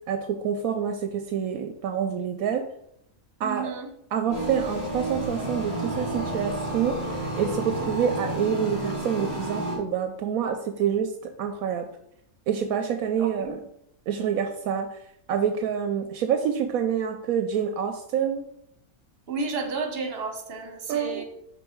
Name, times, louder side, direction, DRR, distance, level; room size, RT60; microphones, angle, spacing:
voice 1, 0.1-2.6 3.4-3.7 4.1-11.9 12.5-13.6 14.1-15.0 15.3-18.5 20.9-21.2, right 8 dB, 75° right, 6 dB, 1.0 m, -27 dB
voice 2, 3.4-3.9 13.2-13.5 19.3-21.2, right 3 dB, 45° right, 4 dB, 1.1 m, -32 dB
sound 1, 4.3-9.8, right 1 dB, 60° left, 3.1 m, -30 dB
5.4 x 4.8 x 4.5 m, 0.76 s
omnidirectional pair, 1.5 m